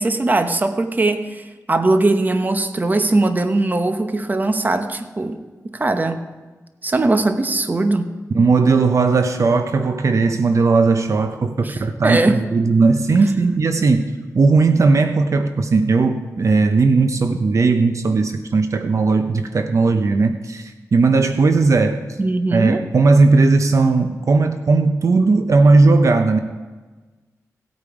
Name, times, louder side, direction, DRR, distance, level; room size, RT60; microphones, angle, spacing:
voice 1, 0.0-6.2 6.8-8.1 11.6-12.4 22.2-22.8, right 2 dB, 30° right, 8 dB, 0.9 m, -20 dB
voice 2, 8.3-22.0 22.5-26.4, right 3 dB, 55° right, 7 dB, 0.7 m, -17 dB
17.0 x 8.7 x 4.9 m, 1.3 s
wide cardioid pair, 115°, 6 cm